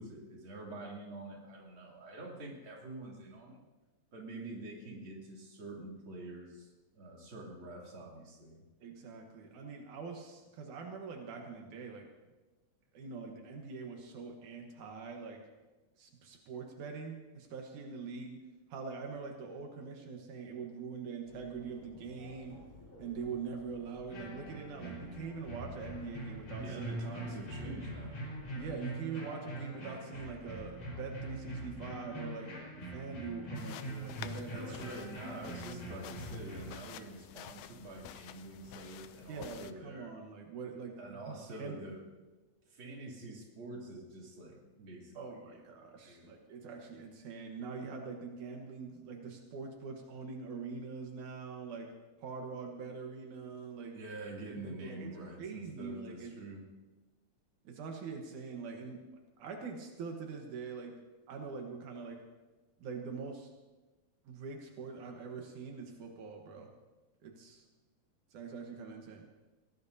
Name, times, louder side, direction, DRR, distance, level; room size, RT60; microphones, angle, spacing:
voice 1, 0.0-3.7 4.1-8.6 26.6-28.2 34.5-40.2 41.0-42.0 42.7-45.4 46.1-46.3 53.9-56.6, right 2 dB, 45° right, -2 dB, 3.5 m, -46 dB
voice 2, 8.8-12.1 12.9-15.4 16.0-18.4 18.7-22.6 23.0-26.9 28.6-32.5 32.9-34.8 39.3-41.8 45.2-51.9 52.2-54.0 54.6-55.1 55.4-56.4 57.6-59.0 59.4-61.0 61.3-62.2 62.8-63.5 64.3-66.7 67.2-67.6 68.3-69.3, right 5 dB, 85° right, 2 dB, 2.8 m, -43 dB
sound 1, 21.2-28.7, left 1 dB, 30° left, 4.8 m, -56 dB
sound 2, 24.1-36.7, right 1 dB, 60° left, 5.8 m, -43 dB
sound 3, 33.6-39.7, left 12 dB, 90° left, 2.1 m, -50 dB
22.5 x 18.0 x 2.7 m, 1.2 s
omnidirectional pair, 3.4 m